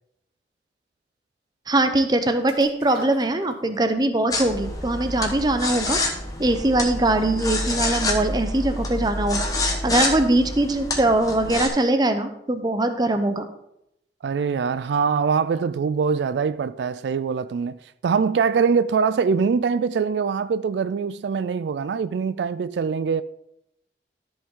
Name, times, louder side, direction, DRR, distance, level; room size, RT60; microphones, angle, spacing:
voice 1, 1.7-6.0 6.4-9.5 9.8-13.5, right 2 dB, 25° right, 0.7 m, -22 dB
sound 1, 2.5-4.0 4.4-4.5, right 2 dB, 55° right, 2.2 m, -41 dB
sound 2, 4.3-11.7, left 2 dB, 20° left, 1.1 m, -27 dB
voice 2, 14.2-17.8 18.0-23.2, right 5 dB, 80° right, 0.3 m, -23 dB
13.5 x 5.3 x 3.7 m
head